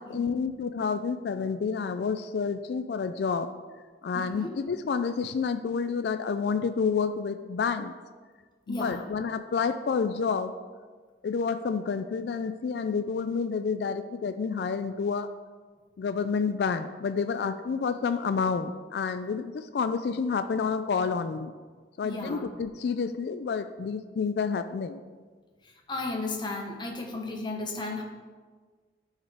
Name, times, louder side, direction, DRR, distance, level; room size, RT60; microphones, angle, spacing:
voice 1, 0.0-3.5 4.0-7.9 8.7-10.5 11.2-15.3 16.0-21.5 22.0-25.0, left 5 dB, 65° left, 10 dB, 0.3 m, -29 dB
voice 2, 4.1-4.5 8.7-9.1 22.0-22.5 25.9-28.0, left 2 dB, 25° left, 1 dB, 1.0 m, -34 dB
11.5 x 4.7 x 3.5 m, 1.5 s
head